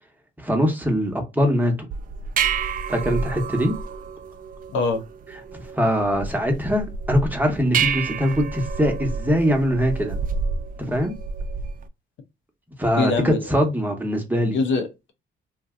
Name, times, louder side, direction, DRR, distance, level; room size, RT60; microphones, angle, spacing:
voice 1, 0.4-1.7 2.9-3.8 5.5-10.2 10.9-11.1 12.8-14.6, equal, 10° right, 0.9 m, -22 dB
sound 1, 1.9-11.9, right 6 dB, 45° right, 0.4 m, -29 dB
voice 2, 4.7-5.0 13.0-13.4 14.5-15.1, left 4 dB, 75° left, 0.7 m, -23 dB
2.6 x 2.2 x 3.6 m
cardioid pair, 90°, 20 cm